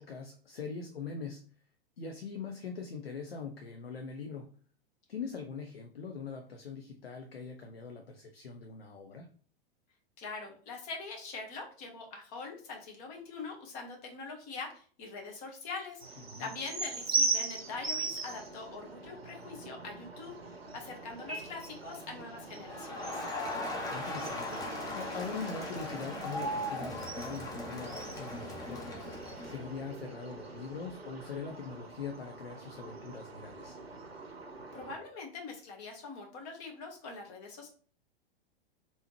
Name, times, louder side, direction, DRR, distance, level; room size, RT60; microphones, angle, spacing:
voice 1, 0.0-1.4 2.0-4.5 5.1-9.3 16.3-16.5 23.6-29.0 29.4-33.8, left 5 dB, 75° left, 4 dB, 0.6 m, -42 dB
voice 2, 10.2-20.3 20.7-23.2 34.7-37.7, left 4 dB, 40° left, 2 dB, 1.1 m, -43 dB
sound 1, 16.0-35.0, right 3 dB, 85° right, 0.7 m, -40 dB
Crowd, 22.7-29.7, left 1 dB, 10° left, 0.7 m, -38 dB
3.4 x 2.8 x 3.0 m, 0.43 s
figure-of-eight pair, 100°, 30 cm